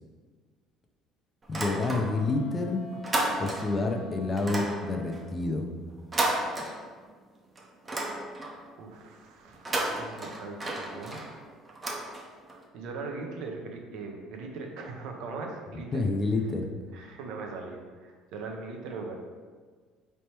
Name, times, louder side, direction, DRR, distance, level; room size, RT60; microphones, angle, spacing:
sound 1, 1.4-2.4 2.7-3.9 4.4-7.2 7.6-8.7 9.5-12.6, right 2 dB, 20° right, 0.6 m, -33 dB
voice 1, 1.5-2.8 3.4-5.6 15.9-16.7, left 3 dB, 25° left, 3 dB, 0.5 m, -28 dB
Wind instrument woodwind instrument, 1.9-5.4, right 2 dB, 80° left, 0.8 m, -46 dB
voice 2, 8.8-11.2 12.7-16.0 16.9-19.2, right 3 dB, 75° right, 2 dB, 0.6 m, -40 dB
4.2 x 3.3 x 2.9 m, 1.5 s
cardioid pair, 120°, 0 cm